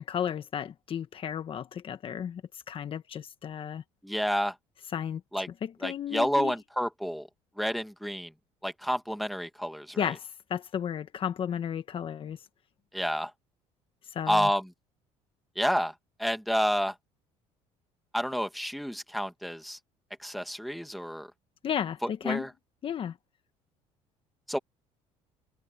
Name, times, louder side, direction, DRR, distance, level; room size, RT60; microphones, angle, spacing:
voice 1, 0.0-2.4 2.7-3.8 4.9-5.2 5.6-6.5 10.0-12.4 14.1-14.5 21.6-22.5 22.8-23.1, left 8 dB, 45° left, 1.3 m, -33 dB
voice 2, 4.0-4.5 5.3-5.5 5.8-7.3 7.6-8.3 8.6-10.1 12.9-13.3 14.3-14.7 15.6-15.9 16.2-16.9 18.1-19.8 20.2-21.3 22.0-22.5 24.5-24.6, equal, ahead, 2.2 m, -29 dB
supercardioid pair, 95°, 13 cm